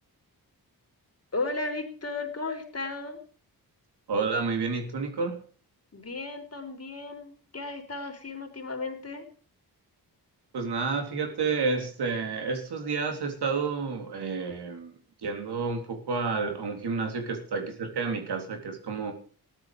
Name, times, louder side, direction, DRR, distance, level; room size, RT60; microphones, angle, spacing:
voice 1, 1.3-3.2 5.9-9.3, left 3 dB, 40° left, 4 dB, 4.0 m, -35 dB
voice 2, 4.1-5.4 10.5-14.9 15.2-19.1, right 4 dB, 85° right, 4 dB, 3.4 m, -30 dB
14.5 x 11.5 x 5.0 m, 0.41 s
cardioid pair, 75°, 38 cm